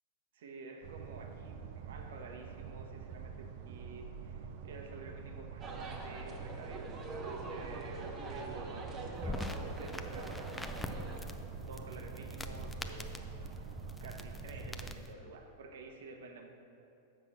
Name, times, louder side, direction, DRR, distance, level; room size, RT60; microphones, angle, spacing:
voice 1, 0.3-11.3 11.7-13.7 14.0-16.5, right 3 dB, 80° right, 4 dB, 1.0 m, -50 dB
sound 1, 0.8-15.0, right 6 dB, 55° right, 0.5 m, -46 dB
sound 2, 5.6-11.2, right 3 dB, 30° right, 1.0 m, -44 dB
sound 3, 9.1-15.1, left 2 dB, 5° left, 0.4 m, -44 dB
7.0 x 5.6 x 7.3 m, 2.8 s
supercardioid pair, 145°, 0 cm